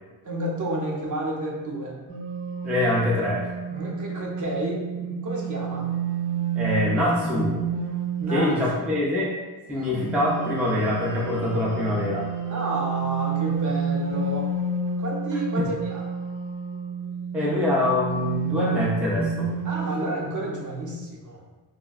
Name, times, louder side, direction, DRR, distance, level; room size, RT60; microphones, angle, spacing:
voice 1, 0.2-2.0 3.7-5.9 8.2-8.8 12.5-14.5 15.0-16.0 19.6-21.4, right 1 dB, 40° right, -2 dB, 0.7 m, -30 dB
sound 1, 2.1-8.6 9.7-20.0, right 5 dB, 85° right, 1.0 m, -29 dB
voice 2, 2.6-3.5 6.6-7.6 8.3-9.3 9.7-12.3 15.6-15.7 17.3-19.5, left 1 dB, 5° right, -5 dB, 0.4 m, -24 dB
3.5 x 2.1 x 2.3 m, 1.3 s
cardioid pair, 90°, 47 cm